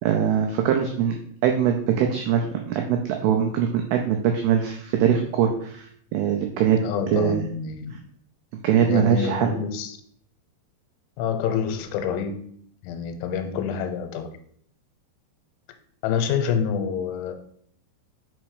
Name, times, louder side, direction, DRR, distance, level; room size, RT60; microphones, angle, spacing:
voice 1, 0.0-1.2 1.4-6.8 7.1-7.4 8.6-9.5, right 8 dB, 85° right, 3 dB, 2.3 m, -22 dB
voice 2, 6.8-8.0 8.8-10.0 11.2-12.4 12.8-14.3 16.0-17.3, left 7 dB, 85° left, 7 dB, 3.1 m, -27 dB
6.2 x 4.2 x 4.7 m, 0.63 s
omnidirectional pair, 5.4 m